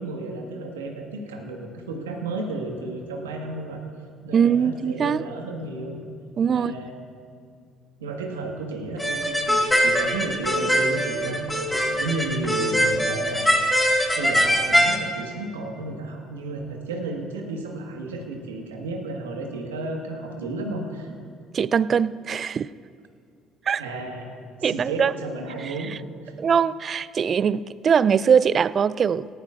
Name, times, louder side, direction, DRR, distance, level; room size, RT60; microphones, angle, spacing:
voice 1, 0.0-3.8 4.2-6.0 6.5-6.9 8.0-21.2 23.8-25.9 26.2-26.4, right 2 dB, 90° right, 1 dB, 1.5 m, -33 dB
voice 2, 4.3-5.2 6.4-6.7 21.5-22.7 23.7-23.8 24.6-25.1 26.4-29.3, right 7 dB, 45° right, 18 dB, 0.3 m, -21 dB
sound 1, 9.0-15.0, equal, 10° left, 2.1 m, -22 dB
18.5 x 13.0 x 2.5 m, 2.3 s
hypercardioid pair, 55°, 0 cm